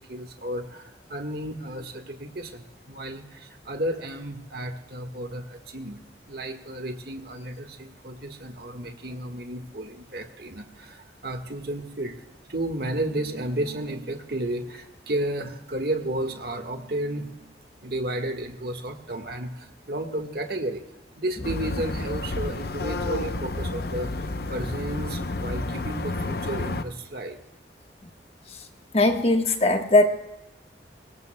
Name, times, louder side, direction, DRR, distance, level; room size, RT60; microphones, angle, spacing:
voice 1, 0.0-6.0 6.3-12.2 12.5-20.8 21.2-27.4, right 1 dB, 55° right, 5 dB, 1.5 m, -33 dB
sound 1, 21.4-26.8, left 2 dB, 55° left, 0.7 m, -30 dB
voice 2, 28.9-30.0, left 2 dB, 35° left, 5 dB, 1.3 m, -19 dB
23.5 x 19.0 x 2.2 m, 0.91 s
head